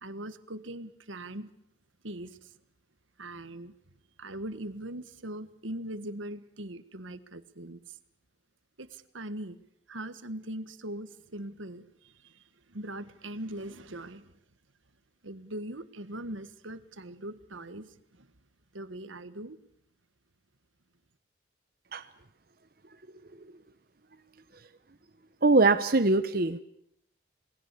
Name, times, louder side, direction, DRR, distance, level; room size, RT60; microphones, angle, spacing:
voice 1, 0.0-1.5 2.0-2.5 3.2-3.7 4.2-8.0 8.8-9.6 9.9-12.4 12.7-14.3 15.2-18.3 18.7-19.6, right 1 dB, 85° right, 12 dB, 1.6 m, -41 dB
voice 2, 25.4-26.6, right 3 dB, 50° right, 9 dB, 1.0 m, -22 dB
28.5 x 19.5 x 8.4 m, 0.73 s
head